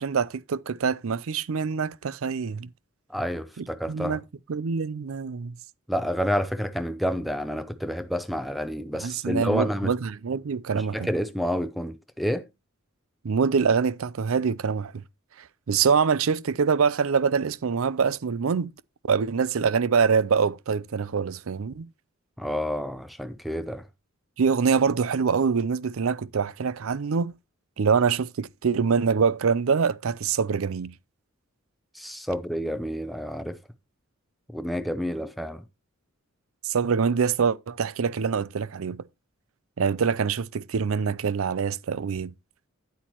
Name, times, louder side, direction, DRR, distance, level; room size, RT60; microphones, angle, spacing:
voice 1, 0.0-2.7 3.6-4.2 4.5-5.6 9.0-11.1 13.2-15.0 15.4-18.7 19.1-21.9 24.4-27.3 27.8-30.9 36.6-39.0 39.8-42.3, right 6 dB, 70° right, 0.5 m, -25 dB
voice 2, 3.1-4.2 5.9-9.9 10.7-12.4 22.4-23.8 31.9-33.6 34.5-35.6, equal, ahead, 0.5 m, -29 dB
9.4 x 8.4 x 3.0 m
head